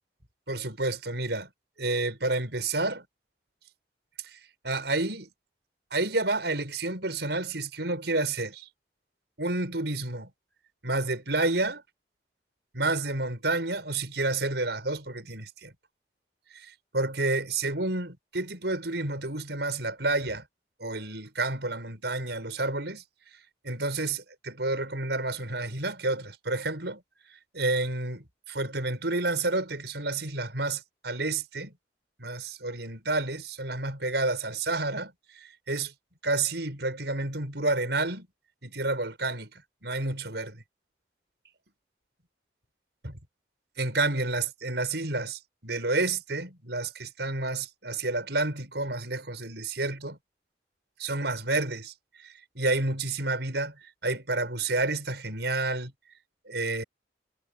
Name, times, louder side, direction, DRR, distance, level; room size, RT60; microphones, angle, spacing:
voice 1, 0.5-1.5 1.8-3.1 4.3-4.4 4.6-5.3 5.9-8.7 9.4-10.3 10.8-11.8 12.7-15.7 16.5-20.4 20.8-23.0 23.6-27.0 27.5-31.7 32.2-35.9 36.2-38.3 38.6-39.5 39.8-40.6 43.0-43.1 43.8-50.2 51.0-51.9 52.2-55.9 56.5-56.8, right 2 dB, 75° right, 5.5 m, -30 dB
head